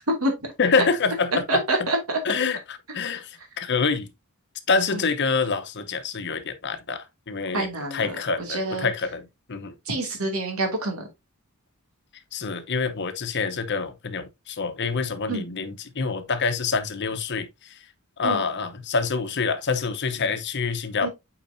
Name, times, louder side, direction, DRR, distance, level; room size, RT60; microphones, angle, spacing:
voice 1, 0.6-1.9 2.2-4.1 4.7-9.7 12.3-17.8 18.2-21.1, left 4 dB, 55° left, 0.9 m, -26 dB
voice 2, 1.5-2.2 4.9-5.0 7.5-8.2 8.5-8.9 9.9-11.1 15.3-15.4 18.2-18.4 21.0-21.1, right 2 dB, 80° right, 2.5 m, -26 dB
8.6 x 4.8 x 2.7 m
head